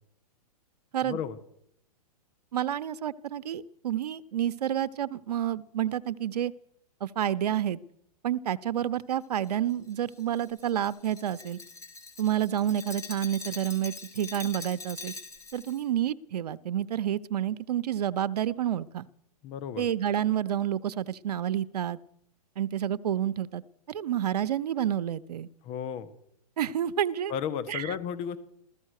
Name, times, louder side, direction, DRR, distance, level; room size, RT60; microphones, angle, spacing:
voice 1, 1.0-1.4 19.4-19.8 25.6-26.1 27.3-28.4, left 8 dB, 30° left, 14 dB, 1.4 m, -33 dB
voice 2, 2.5-6.5 7.0-7.8 8.2-11.6 12.2-15.1 15.5-19.1 19.8-22.0 22.6-23.6 23.9-25.5 26.6-27.3 27.7-27.9, right 10 dB, 80° right, 15 dB, 0.8 m, -29 dB
Glass, 9.4-15.8, left 3 dB, 15° left, 3.9 m, -43 dB
15.0 x 14.5 x 6.6 m, 0.73 s
hypercardioid pair, 145°, 20 cm